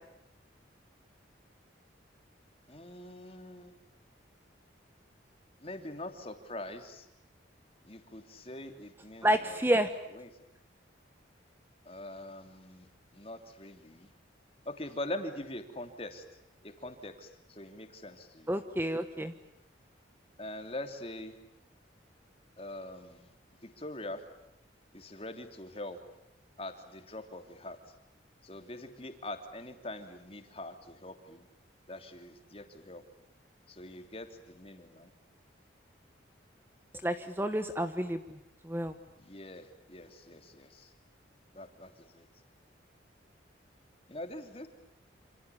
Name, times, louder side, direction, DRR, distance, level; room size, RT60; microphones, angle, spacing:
voice 1, 2.7-3.8 5.6-7.1 7.8-9.6 10.1-10.3 11.8-14.1 14.6-16.2 16.6-18.6 20.4-21.3 22.6-23.3 23.6-24.2 24.9-26.0 26.6-27.8 28.4-31.5 31.9-33.0 33.7-35.1 39.2-40.9 41.5-42.3 44.1-44.7, left 1 dB, 30° left, 6 dB, 3.1 m, -43 dB
voice 2, 9.2-9.9 18.5-19.3 37.0-38.2 38.6-38.9, right 1 dB, 10° right, 9 dB, 1.2 m, -29 dB
28.0 x 27.5 x 7.1 m, 0.89 s
head